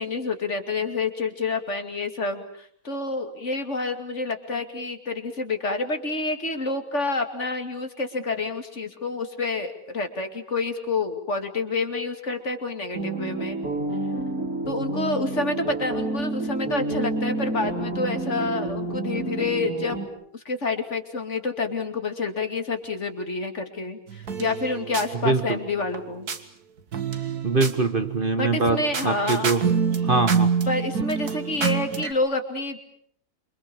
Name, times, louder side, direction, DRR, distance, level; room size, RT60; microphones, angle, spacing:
voice 1, 0.0-13.6 14.7-20.0 20.3-26.3 28.4-29.5 30.7-32.8, left 3 dB, 50° left, 6 dB, 2.9 m, -28 dB
sound 1, 12.9-20.1, right 2 dB, 70° right, 4.7 m, -29 dB
sound 2, 24.1-26.4 26.9-32.1, right 6 dB, 90° right, 2.3 m, -27 dB
voice 2, 25.2-25.6 27.4-29.7 30.0-30.5, right 3 dB, 35° right, 9 dB, 1.3 m, -23 dB
28.0 x 25.0 x 7.2 m, 0.63 s
omnidirectional pair, 1.6 m